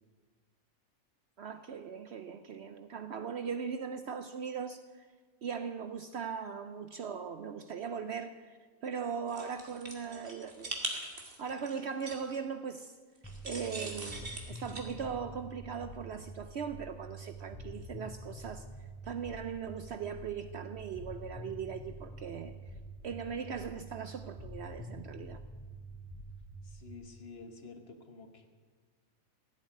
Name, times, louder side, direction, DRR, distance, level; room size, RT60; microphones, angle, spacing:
voice 1, 1.4-5.1 5.4-8.6 8.8-10.8 11.4-12.9 13.4-18.7 19.0-22.6 23.0-25.4, right 6 dB, 60° right, 0.7 m, -39 dB
sound 1, 9.3-12.4 13.2-14.8, right 2 dB, 40° right, 2.1 m, -41 dB
sound 2, 13.2-26.9, right 1 dB, 10° left, 0.4 m, -47 dB
voice 2, 26.6-28.5, left 4 dB, 45° left, 1.4 m, -50 dB
15.5 x 7.9 x 9.3 m
omnidirectional pair, 1.5 m